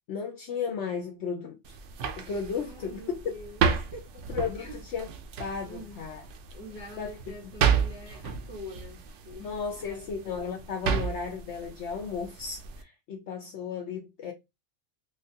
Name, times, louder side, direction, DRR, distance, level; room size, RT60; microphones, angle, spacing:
voice 1, 0.1-1.8 2.2-3.4 4.3-5.1 5.4-6.2 7.0-7.1 9.4-14.3, left 6 dB, 65° left, 0.8 m, -34 dB
sound 1, 1.6-12.8, right 7 dB, 70° right, 0.8 m, -32 dB
voice 2, 2.6-3.6 3.9-4.1 4.6-4.8 5.6-6.1 6.5-10.3, left 1 dB, 20° left, 1.0 m, -45 dB
3.7 x 2.3 x 2.7 m
omnidirectional pair, 1.4 m